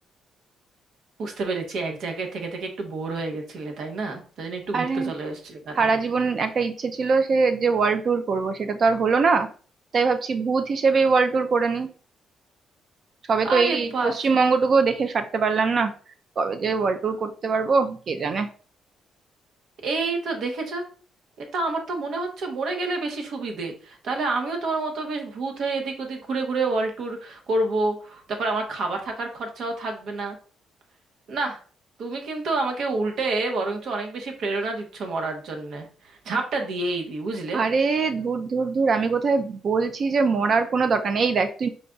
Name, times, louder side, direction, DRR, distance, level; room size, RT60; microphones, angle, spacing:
voice 1, 1.2-5.9 13.4-14.2 19.8-20.8 21.5-30.4 31.3-31.6 32.0-37.6, right 3 dB, 70° right, 3 dB, 1.0 m, -28 dB
voice 2, 4.7-5.1 5.7-9.5 9.9-11.9 13.3-15.9 16.4-18.5 37.5-41.7, right 4 dB, 50° right, 8 dB, 0.5 m, -22 dB
5.0 x 2.3 x 3.8 m, 0.40 s
cardioid pair, 90°, 0 cm